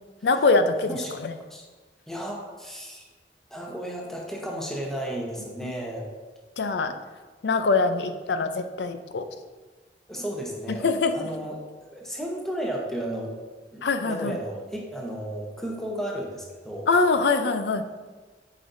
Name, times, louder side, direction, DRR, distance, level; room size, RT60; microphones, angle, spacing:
voice 1, 0.2-0.9 1.2-1.3 5.6-5.7 6.6-6.9 7.4-9.2 10.7-11.3 13.8-14.4 16.9-17.8, left 3 dB, 70° left, 9 dB, 0.5 m, -23 dB
voice 2, 0.9-1.6 2.1-3.1 3.5-6.1 10.1-11.6 11.9-13.3 13.7-16.9, right 1 dB, 5° left, -1 dB, 0.9 m, -34 dB
8.5 x 5.1 x 2.6 m, 1.3 s
head